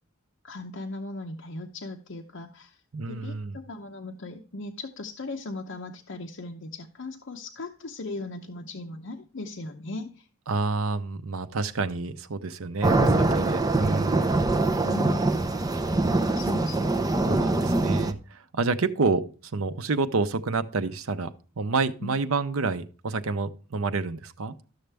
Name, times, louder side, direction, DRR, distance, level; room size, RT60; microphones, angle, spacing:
voice 1, 0.4-2.8 3.1-10.3 14.8-15.2 16.4-16.9 22.0-22.2, left 2 dB, 65° left, 0.8 m, -38 dB
voice 2, 2.9-3.6 10.5-14.4 17.3-21.3 21.6-24.5, right 4 dB, 85° right, 0.7 m, -28 dB
sound 1, 12.8-18.1, right 2 dB, 20° right, 0.6 m, -23 dB
12.5 x 6.5 x 3.4 m
head